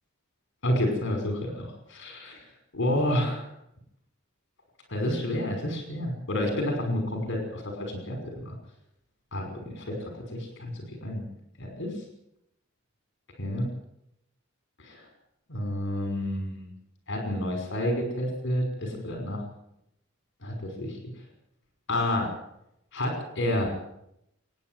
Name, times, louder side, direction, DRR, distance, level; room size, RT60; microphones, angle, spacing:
voice 1, 0.6-2.5 2.7-3.5 4.9-8.5 9.3-11.2 11.6-12.0 13.4-13.7 14.8-15.0 15.5-16.7 17.1-19.4 20.4-21.0 21.9-22.3 22.9-23.7, left 1 dB, 60° left, 3 dB, 5.7 m, -30 dB
27.5 x 10.5 x 9.3 m, 0.79 s
head